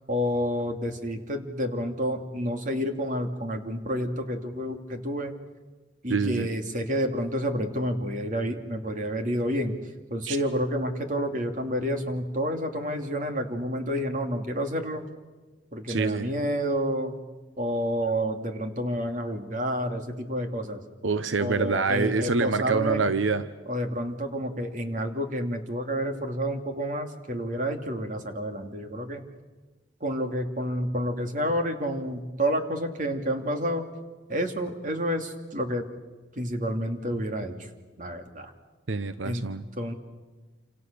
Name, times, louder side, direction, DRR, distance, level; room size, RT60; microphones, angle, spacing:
voice 1, 0.1-5.3 6.0-9.8 10.1-15.0 15.7-17.2 17.6-20.8 21.4-23.0 23.7-29.2 30.0-33.8 34.3-35.9 36.4-37.7 38.0-38.5 39.2-39.4 39.8-39.9, equal, 40° right, 5 dB, 2.7 m, -29 dB
voice 2, 6.1-6.5 10.3-10.4 15.9-16.3 21.0-23.4 38.9-39.6, right 4 dB, 85° right, 12 dB, 0.9 m, -26 dB
28.5 x 27.0 x 6.9 m, 1.3 s
head